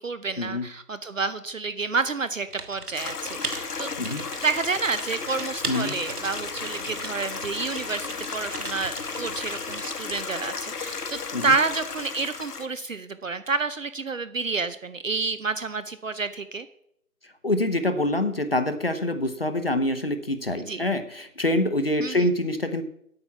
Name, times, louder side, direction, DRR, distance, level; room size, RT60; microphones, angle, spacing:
voice 1, 0.0-3.9 4.4-16.7 20.6-20.8 22.0-22.3, right 4 dB, 60° right, 12 dB, 0.7 m, -29 dB
Typing, 2.5-9.9, right 4 dB, 85° right, 1.7 m, -38 dB
Stream, 2.9-12.7, left 5 dB, 85° left, 1.4 m, -34 dB
voice 2, 17.4-22.8, left 1 dB, 40° left, 9 dB, 0.8 m, -25 dB
9.7 x 8.6 x 5.8 m, 0.72 s
figure-of-eight pair, 175°, 45 cm